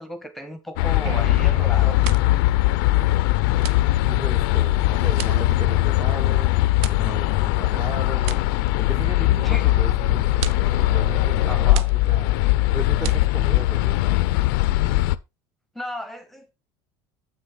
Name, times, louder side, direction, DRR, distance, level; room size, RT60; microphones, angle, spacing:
voice 1, 0.0-1.9 9.2-9.7 11.5-11.9 15.7-16.5, left 1 dB, ahead, 1.1 m, -34 dB
sound 1, 0.8-15.1, left 17 dB, 80° left, 0.5 m, -20 dB
sound 2, 1.0-4.7, right 5 dB, 85° right, 1.6 m, -38 dB
sound 3, 1.3-1.6 1.8-13.8, right 12 dB, 65° right, 0.6 m, -37 dB
voice 2, 4.0-6.5 6.9-8.4 8.8-14.2, right 2 dB, 25° right, 1.2 m, -36 dB
7.5 x 6.3 x 3.8 m
supercardioid pair, 100°, 11 cm